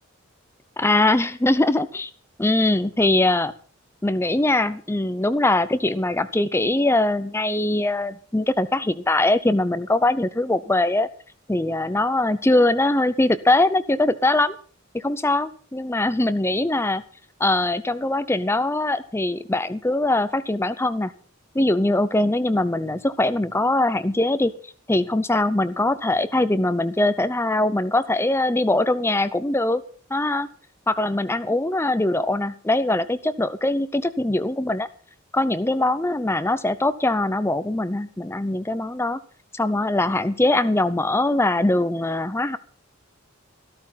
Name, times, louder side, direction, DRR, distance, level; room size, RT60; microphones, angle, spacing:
voice 1, 0.8-2.1 2.4-3.5 4.0-11.1 11.5-14.5 14.9-17.0 17.4-21.1 21.5-24.5 24.9-29.8 30.1-30.5 30.9-34.9 35.3-39.2 39.5-42.6, left 2 dB, 10° left, 14 dB, 0.6 m, -22 dB
14.0 x 13.0 x 5.7 m, 0.42 s
head